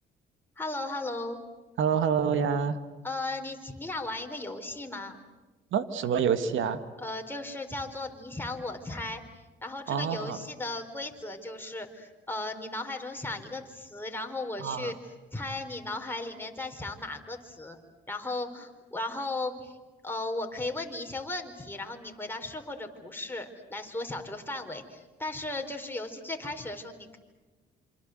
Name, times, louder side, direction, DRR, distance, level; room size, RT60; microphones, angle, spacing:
voice 1, 0.6-1.4 3.0-5.2 7.0-9.2 9.6-14.9 15.3-17.8 18.1-19.8 20.0-27.2, left 2 dB, 10° left, 3 dB, 4.3 m, -36 dB
voice 2, 1.8-2.8 5.7-6.8 9.9-10.4 14.6-14.9, right 7 dB, 75° right, 10 dB, 2.0 m, -27 dB
27.0 x 26.0 x 7.9 m, 1.3 s
cardioid pair, 90°, 20 cm